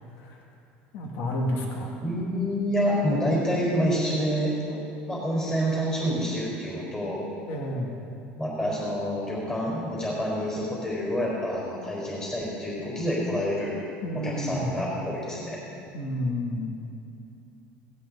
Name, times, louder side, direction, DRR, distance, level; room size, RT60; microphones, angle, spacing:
voice 1, 0.9-1.9 7.5-7.9 14.0-14.7 15.9-16.7, left 1 dB, 70° left, -1 dB, 2.7 m, -30 dB
voice 2, 2.0-4.8 5.1-7.2 8.4-13.7 14.1-15.6, equal, 15° left, -4 dB, 4.5 m, -28 dB
18.0 x 17.0 x 4.2 m, 2.6 s
cardioid pair, 140°, 4 cm